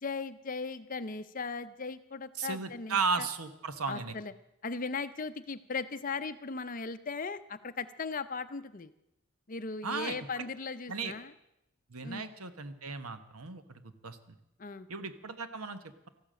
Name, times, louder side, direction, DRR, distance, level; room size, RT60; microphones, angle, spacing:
voice 1, 0.0-3.3 3.9-4.3 4.6-8.9 9.5-11.3 12.0-12.2 14.6-14.9, left 4 dB, 40° left, 12 dB, 0.6 m, -38 dB
voice 2, 2.4-4.1 9.8-10.4 10.9-11.1 11.9-14.2 14.9-16.1, right 4 dB, 90° right, 10 dB, 1.2 m, -35 dB
14.0 x 12.0 x 7.6 m, 0.85 s
head